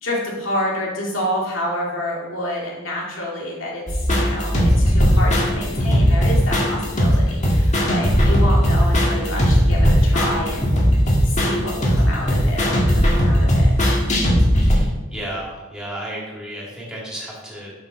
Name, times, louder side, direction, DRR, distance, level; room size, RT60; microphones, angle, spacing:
voice 1, 0.0-3.8 4.1-10.8 11.2-13.7, left 1 dB, 85° left, -3 dB, 2.2 m, -28 dB
sound 1, 3.9-14.7, equal, 40° left, 1.5 m, -17 dB
voice 2, 14.6-17.7, right 1 dB, 5° right, -5 dB, 2.2 m, -33 dB
6.9 x 5.9 x 3.9 m, 1.1 s
head